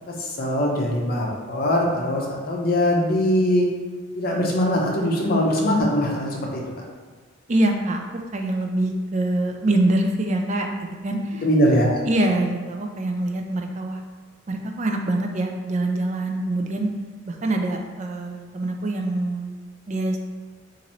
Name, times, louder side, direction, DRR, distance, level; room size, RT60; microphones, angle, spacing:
voice 1, 0.1-3.7 4.1-6.6 11.4-12.0, equal, 45° left, -2 dB, 0.6 m, -21 dB
voice 2, 7.5-11.4 12.1-14.0 14.5-16.9 17.3-20.3, right 1 dB, 35° right, 3 dB, 0.3 m, -25 dB
2.9 x 2.6 x 4.2 m, 1.4 s
head